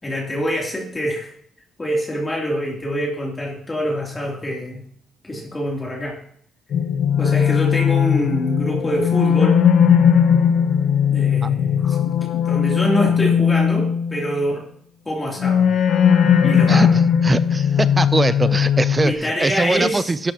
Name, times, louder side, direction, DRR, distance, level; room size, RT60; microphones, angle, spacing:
voice 1, 0.0-1.3 1.8-4.8 5.2-6.2 7.2-9.6 11.1-14.6 15.0-15.7 16.4-17.0 19.0-20.1, equal, 20° left, -2 dB, 3.0 m, -25 dB
sound 1, 6.7-14.3 15.4-19.1, left 8 dB, 75° left, 0.9 m, -18 dB
voice 2, 17.2-20.3, right 3 dB, 25° right, 14 dB, 0.5 m, -21 dB
12.5 x 12.0 x 2.9 m, 0.63 s
cardioid pair, 90°, 0 cm